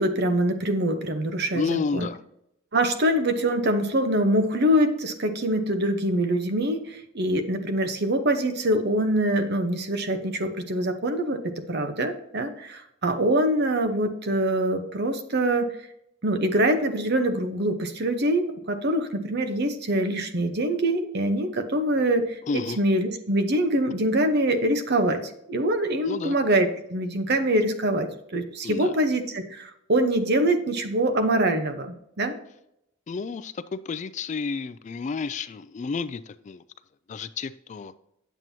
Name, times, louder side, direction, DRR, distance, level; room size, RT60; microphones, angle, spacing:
voice 1, 0.0-2.1 2.7-15.7 16.2-32.4, right 1 dB, 55° right, 8 dB, 0.9 m, -24 dB
voice 2, 1.5-2.2 22.5-22.8 26.0-26.4 28.6-28.9 33.1-36.6 37.1-37.9, left 5 dB, 35° left, 14 dB, 0.3 m, -31 dB
9.1 x 7.5 x 2.8 m, 0.79 s
head